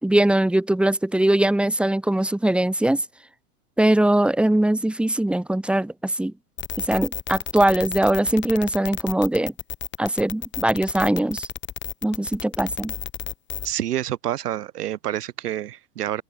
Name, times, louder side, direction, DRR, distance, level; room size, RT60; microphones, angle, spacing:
voice 1, 0.0-3.0 3.8-6.3 6.8-9.5 10.0-11.5 12.0-12.9, right 1 dB, ahead, 2.1 m, -21 dB
sound 1, 6.6-13.7, left 11 dB, 25° left, 3.4 m, -32 dB
voice 2, 13.6-16.2, right 12 dB, 75° right, 1.3 m, -28 dB
open air
hypercardioid pair, 125°, 47 cm